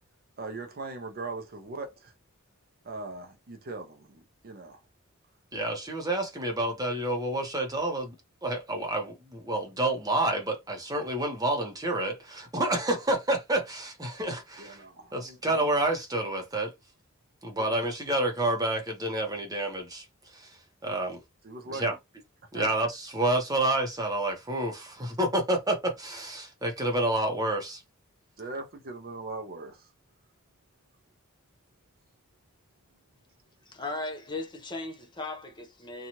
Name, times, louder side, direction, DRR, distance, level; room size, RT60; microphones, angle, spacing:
voice 1, 0.4-2.1 2.8-4.8 14.6-15.7 17.5-17.7 21.4-21.8 22.5-22.7 28.4-29.9, right 3 dB, 40° right, 0.5 m, -40 dB
voice 2, 5.5-8.2 8.4-14.8 15.1-16.7 17.4-20.0 20.3-20.6 20.8-21.2 21.7-21.9 22.5-27.8, right 1 dB, 15° right, 0.8 m, -29 dB
voice 3, 33.7-36.1, left 2 dB, 20° left, 0.6 m, -37 dB
2.7 x 2.3 x 2.9 m
head